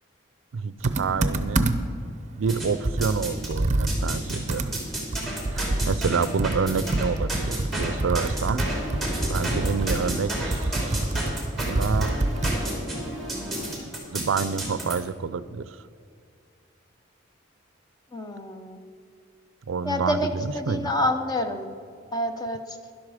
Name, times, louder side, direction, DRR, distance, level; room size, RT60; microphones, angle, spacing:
voice 1, 0.5-1.9 2.4-4.8 5.5-8.6 9.3-11.0 11.6-12.2 14.1-15.8 19.7-20.9, right 5 dB, 75° right, 16 dB, 0.4 m, -28 dB
Computer keyboard, 0.8-2.0 2.4-2.5 2.8-12.7, right 2 dB, 35° right, 0.7 m, -27 dB
sound 1, 2.5-3.5 3.9-15.0, right 1 dB, ahead, 2.7 m, -31 dB
voice 2, 18.1-18.8 19.8-21.7 22.1-22.8, left 1 dB, 20° left, 6 dB, 0.8 m, -28 dB
12.5 x 11.5 x 4.9 m, 2.3 s
head